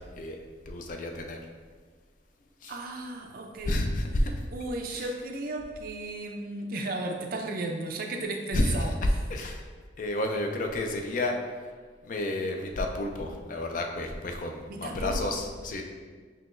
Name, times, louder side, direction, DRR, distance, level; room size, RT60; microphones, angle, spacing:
voice 1, 0.7-1.4 2.6-2.7 3.7-4.3 4.9-5.1 8.5-8.7 9.3-9.6 10.0-11.3 12.0-15.8, left 1 dB, 40° left, 3 dB, 0.3 m, -30 dB
voice 2, 2.7-3.8 4.5-9.0 14.7-15.4, right 2 dB, 45° right, 2 dB, 0.4 m, -34 dB
5.6 x 2.8 x 2.5 m, 1.5 s
head